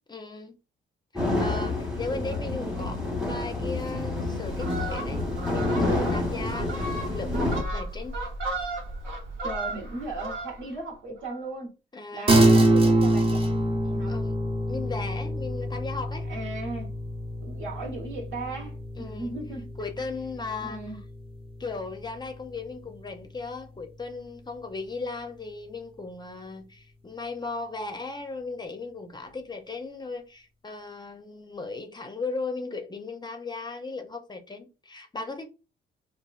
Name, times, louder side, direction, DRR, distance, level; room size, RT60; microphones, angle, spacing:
voice 1, 0.1-0.5 1.1-5.2 5.5-8.2 11.9-12.3 14.1-14.4 14.7-16.3 19.0-19.3 19.8-20.8 21.6-35.5, left 3 dB, 20° left, 0.5 m, -37 dB
sound 1, 1.2-7.6, left 2 dB, 5° right, 1.0 m, -28 dB
voice 2, 2.3-3.0 9.4-11.7 12.1-14.2 16.2-16.9 17.4-19.7 20.6-21.0, right 2 dB, 70° right, 1.2 m, -37 dB
Fowl, 4.5-10.8 11.2-11.4, right 2 dB, 90° right, 0.8 m, -35 dB
sound 2, 12.3-22.0, right 1 dB, 30° right, 0.8 m, -25 dB
2.9 x 2.3 x 2.3 m
cardioid pair, 90°, 20 cm